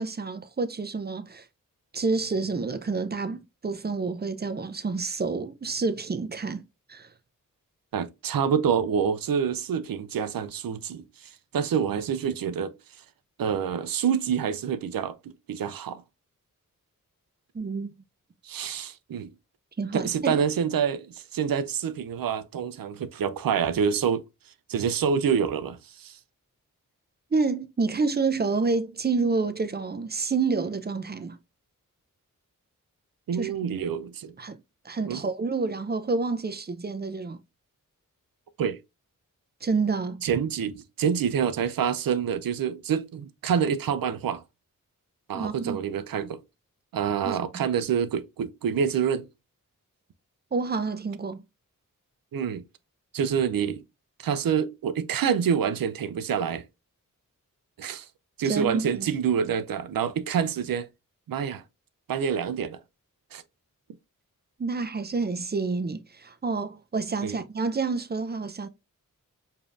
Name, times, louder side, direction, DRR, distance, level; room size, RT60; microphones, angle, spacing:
voice 1, 0.0-1.5 1.9-6.6 6.9-7.1 17.5-18.0 19.8-20.4 27.3-31.4 33.3-33.5 34.4-34.6 34.8-37.4 39.6-40.2 45.3-45.8 47.2-47.6 50.5-51.4 58.4-59.1 64.6-68.7, right 4 dB, 30° right, 0.5 m, -28 dB
voice 2, 7.9-12.7 13.4-16.0 18.4-19.3 19.9-24.2 24.7-26.2 33.3-34.3 35.1-35.2 38.6-38.8 40.2-44.4 45.3-46.4 46.9-49.2 52.3-52.6 53.1-53.8 54.2-56.6 57.8-58.1 58.4-60.9 61.3-61.6 62.1-62.8 63.3-63.4 67.2-67.4, right 7 dB, 85° right, 0.5 m, -27 dB
4.9 x 2.7 x 2.4 m
cardioid pair, 50°, 34 cm